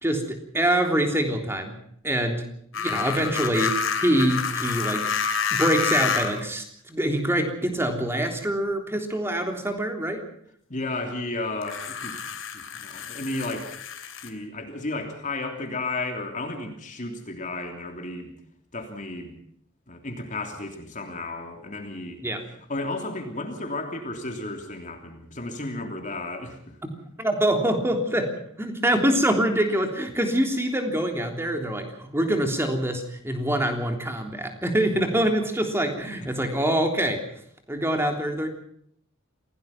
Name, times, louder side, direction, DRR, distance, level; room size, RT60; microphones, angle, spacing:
voice 1, 0.0-1.8 2.0-2.5 2.7-5.1 5.5-10.2 22.2-22.4 26.8-26.9 27.2-37.2 37.7-38.5, right 1 dB, 10° right, 4 dB, 3.4 m, -25 dB
sound 1, 2.7-6.5 7.5-7.6 11.6-14.3, left 6 dB, 70° left, 3.0 m, -28 dB
voice 2, 10.7-12.2 12.4-13.8 14.2-18.3 18.7-19.3 19.9-22.2 22.7-26.8, left 2 dB, 40° left, 4 dB, 3.1 m, -33 dB
27.0 x 17.5 x 6.0 m, 0.66 s
head